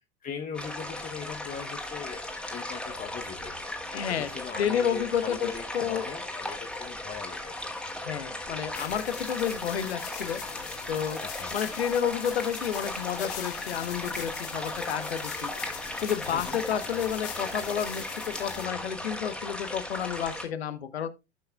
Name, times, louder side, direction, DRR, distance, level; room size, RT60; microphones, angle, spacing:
voice 1, 0.2-3.7 4.2-7.6 11.2-11.6 16.3-16.6, left 7 dB, 25° left, 0.8 m, -40 dB
sound 1, 0.5-20.4, left 1 dB, 5° left, 2.0 m, -37 dB
voice 2, 3.9-4.3 4.6-5.5 5.7-6.1 8.0-10.4 10.9-11.2 11.5-15.5 16.0-21.1, left 8 dB, 80° left, 1.0 m, -30 dB
sound 2, 8.7-18.7, left 9 dB, 50° left, 1.8 m, -42 dB
15.5 x 5.6 x 2.2 m
figure-of-eight pair, 80°, 32 cm